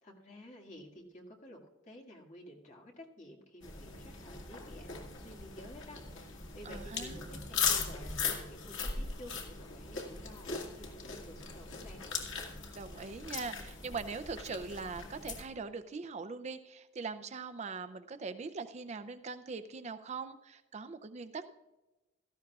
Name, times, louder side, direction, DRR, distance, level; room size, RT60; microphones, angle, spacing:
voice 1, 0.0-12.0, left 1 dB, 40° left, 0 dB, 2.0 m, -52 dB
sound 1, 3.6-15.4, left 5 dB, 90° left, 2.0 m, -39 dB
voice 2, 6.7-7.2 12.7-21.5, right 4 dB, 35° right, 10 dB, 0.4 m, -41 dB
17.0 x 13.5 x 2.4 m, 1.1 s
head